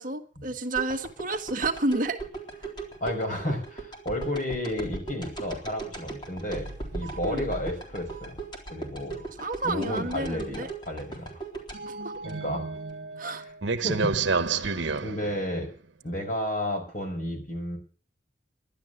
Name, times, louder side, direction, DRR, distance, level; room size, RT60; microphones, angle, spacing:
voice 1, 0.0-2.2 7.2-7.4 9.4-10.7 11.8-12.1 13.2-13.4, right 2 dB, 45° right, 5 dB, 1.5 m, -30 dB
sound 1, 0.7-12.9 13.4-13.5, right 3 dB, 25° left, 3.8 m, -39 dB
voice 2, 3.0-8.4 8.7-9.2 9.6-11.3 12.2-12.8 13.8-14.1 14.5-15.7 16.0-17.8, left 1 dB, 45° left, 3 dB, 5.7 m, -32 dB
sound 2, 6.5-8.3 8.6-8.7 9.2-9.3 9.6-9.7 11.7-15.6, right 4 dB, 85° right, 1.1 m, -31 dB
12.0 x 11.5 x 7.7 m, 0.42 s
head